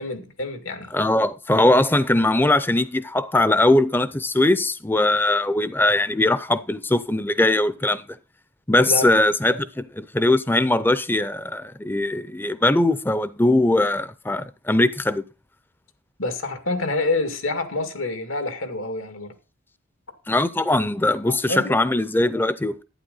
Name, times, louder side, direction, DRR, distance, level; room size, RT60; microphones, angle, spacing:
voice 1, 0.0-0.9 8.9-9.0 9.5-9.6 16.2-19.3 21.3-21.7, left 2 dB, 85° left, 2.1 m, -27 dB
voice 2, 0.9-8.2 8.7-15.2 20.3-22.8, left 1 dB, 10° left, 0.5 m, -20 dB
11.5 x 9.5 x 4.0 m
head